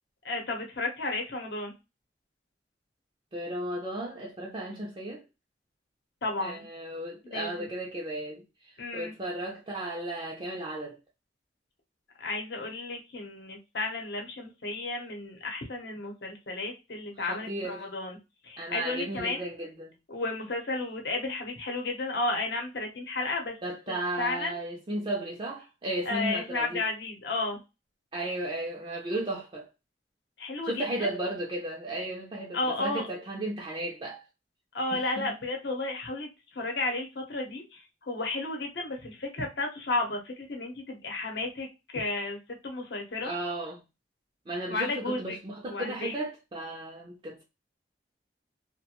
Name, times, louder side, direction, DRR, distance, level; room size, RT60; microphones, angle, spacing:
voice 1, 0.2-1.7 6.2-6.7 7.2-7.7 8.8-9.1 12.2-18.2 18.4-19.5 20.1-23.6 23.9-24.6 26.1-27.6 30.4-31.1 32.5-33.1 34.7-36.3 36.5-42.4 42.6-43.3 44.7-45.4 45.7-46.1, left 2 dB, 70° left, 0.8 m, -33 dB
voice 2, 3.3-5.2 6.4-11.0 17.2-17.9 18.6-19.9 23.6-26.8 28.1-29.7 30.6-34.2 34.9-35.3 43.2-43.8 44.5-47.4, right 1 dB, 30° right, 0.4 m, -35 dB
2.3 x 2.1 x 2.9 m
head